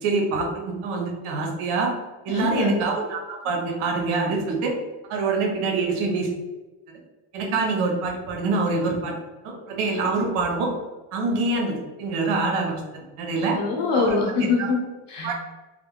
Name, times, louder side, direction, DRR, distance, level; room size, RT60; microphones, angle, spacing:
voice 1, 0.0-1.9 2.2-4.7 5.1-6.3 7.3-9.2 9.4-10.7 11.1-13.6 13.9-14.2 14.6-14.7 15.2-15.3, right 3 dB, 80° right, 1 dB, 0.8 m, -25 dB
voice 2, 2.3-2.8 13.5-15.3, left 4 dB, 60° left, -1 dB, 0.9 m, -24 dB
2.5 x 2.1 x 2.9 m, 1.1 s
cardioid pair, 90°, 48 cm